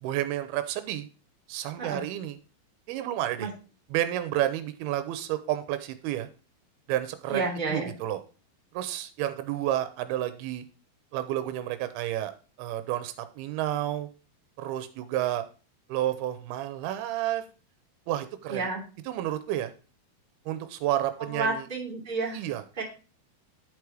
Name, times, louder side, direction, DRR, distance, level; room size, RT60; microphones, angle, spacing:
voice 1, 0.0-1.1 1.5-2.4 2.9-3.5 3.9-6.3 6.9-8.2 8.7-10.6 11.1-12.3 12.6-14.1 14.6-15.4 15.9-17.4 18.1-18.7 19.1-19.7 20.5-21.7 22.3-22.6, right 13 dB, 90° right, 10 dB, 2.6 m, -30 dB
voice 2, 7.3-7.9 18.5-18.8 21.2-22.4 22.8-22.9, right 3 dB, 15° right, -1 dB, 1.9 m, -30 dB
10.5 x 4.8 x 4.7 m, 0.35 s
omnidirectional pair, 4.5 m